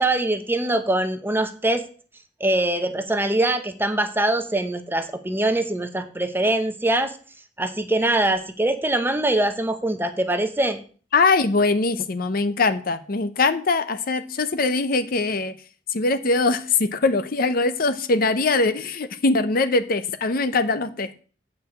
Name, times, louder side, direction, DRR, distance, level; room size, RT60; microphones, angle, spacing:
voice 1, 0.0-1.9 2.4-7.2 7.6-10.8, right 1 dB, 10° right, 8 dB, 0.8 m, -23 dB
voice 2, 11.1-15.5 15.9-21.2, left 3 dB, 55° left, 12 dB, 0.7 m, -22 dB
8.6 x 4.8 x 7.1 m, 0.40 s
head